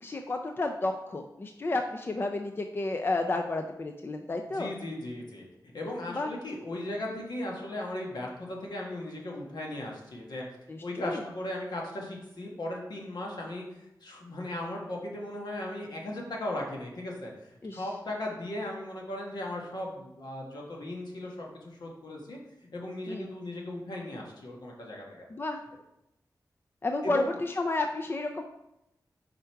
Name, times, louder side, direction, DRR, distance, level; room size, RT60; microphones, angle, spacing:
voice 1, 0.0-4.7 6.1-6.3 10.7-11.2 17.6-17.8 23.1-23.3 25.3-25.6 26.8-28.4, left 2 dB, 30° left, 5 dB, 0.4 m, -31 dB
voice 2, 4.5-10.5 10.8-13.6 14.0-17.3 17.7-22.4 22.7-25.2 27.0-27.3, left 1 dB, 75° left, -1 dB, 1.4 m, -37 dB
5.0 x 4.5 x 4.5 m, 0.87 s
wide cardioid pair, 130°, 7 cm